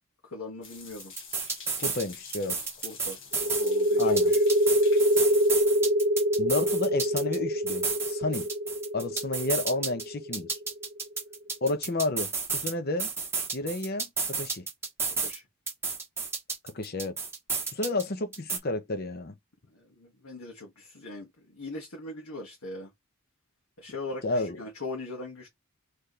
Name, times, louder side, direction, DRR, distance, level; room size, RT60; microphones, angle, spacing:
voice 1, 0.2-1.1 2.8-4.4 15.2-15.5 19.7-22.9 23.8-25.5, left 2 dB, 80° left, 1.6 m, -40 dB
sound 1, 0.6-5.6, left 5 dB, 60° left, 1.4 m, -47 dB
sound 2, 1.0-2.1 2.3-3.7 4.0-7.4 7.7-10.0 10.3-12.7 13.0-15.4 15.7-18.0 18.3-18.6, right 5 dB, 10° right, 1.1 m, -32 dB
voice 2, 1.8-2.6 4.0-4.3 6.4-8.5 8.9-10.6 11.6-13.1 13.5-14.7 16.6-17.2 17.7-19.3 24.2-24.6, left 2 dB, 45° left, 0.8 m, -31 dB
sound 3, 3.4-10.8, equal, 45° right, 0.5 m, -25 dB
4.2 x 3.4 x 3.2 m
head